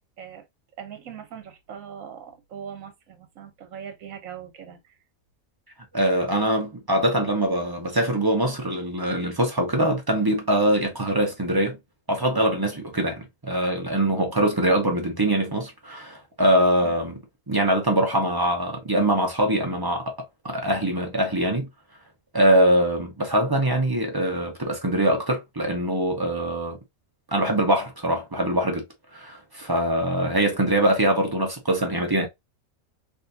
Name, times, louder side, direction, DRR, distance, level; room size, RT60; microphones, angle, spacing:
voice 1, 0.8-4.8 16.8-17.0, right 8 dB, 75° right, 1.3 m, -40 dB
voice 2, 5.9-11.8 12.1-20.1 20.4-21.7 22.3-26.8 27.3-28.9 29.1-32.3, right 1 dB, 25° right, 0.6 m, -23 dB
3.6 x 2.5 x 2.6 m
omnidirectional pair, 1.4 m